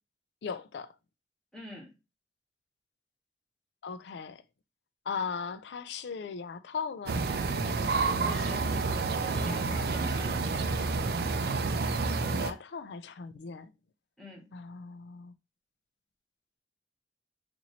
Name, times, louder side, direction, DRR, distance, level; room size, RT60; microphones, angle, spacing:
voice 1, 0.4-0.9 3.8-4.4 5.1-7.2 12.2-13.7 14.5-15.3, left 5 dB, 75° left, 0.4 m, -38 dB
voice 2, 1.5-2.0 8.0-8.7 9.3-10.7 14.2-14.5, equal, 5° left, 1.4 m, -45 dB
sound 1, 7.1-12.5, right 3 dB, 60° right, 0.4 m, -29 dB
3.0 x 2.6 x 4.1 m
head